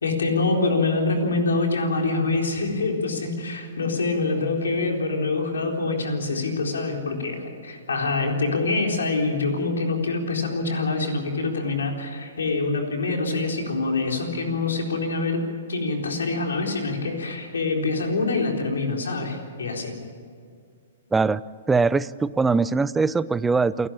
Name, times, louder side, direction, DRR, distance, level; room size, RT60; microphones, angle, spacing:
voice 1, 0.0-15.4 15.7-20.0, left 3 dB, 80° left, 2 dB, 4.0 m, -25 dB
voice 2, 21.1-21.4 21.7-23.9, right 4 dB, 10° right, 18 dB, 0.5 m, -21 dB
28.5 x 12.0 x 8.7 m, 2.1 s
hypercardioid pair, 120°, 0 cm